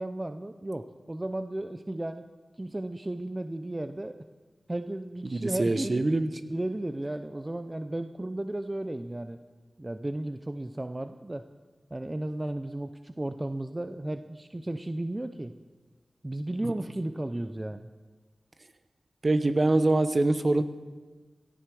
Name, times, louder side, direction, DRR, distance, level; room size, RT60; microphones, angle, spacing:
voice 1, 0.0-2.3 2.6-4.2 4.7-6.1 6.5-9.4 9.8-11.4 11.9-15.5 16.2-17.9, right 1 dB, 25° right, 9 dB, 0.6 m, -34 dB
voice 2, 5.2-6.3 16.6-16.7 19.2-20.6, right 2 dB, 45° right, 10 dB, 1.0 m, -24 dB
17.5 x 14.0 x 4.8 m, 1.3 s
wide cardioid pair, 65°, 0 cm